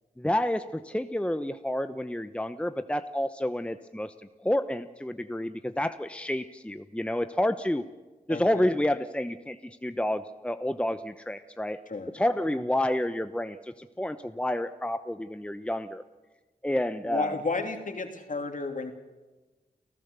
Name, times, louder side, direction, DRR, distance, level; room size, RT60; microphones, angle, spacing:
voice 1, 0.2-4.1 4.4-7.8 8.3-11.8 12.1-16.0 16.6-17.3, left 1 dB, 5° left, 10 dB, 0.9 m, -29 dB
voice 2, 8.3-8.7 11.9-12.1 17.1-18.9, left 3 dB, 55° left, 5 dB, 3.0 m, -32 dB
30.0 x 15.5 x 6.9 m, 1.2 s
cardioid pair, 50°, 16 cm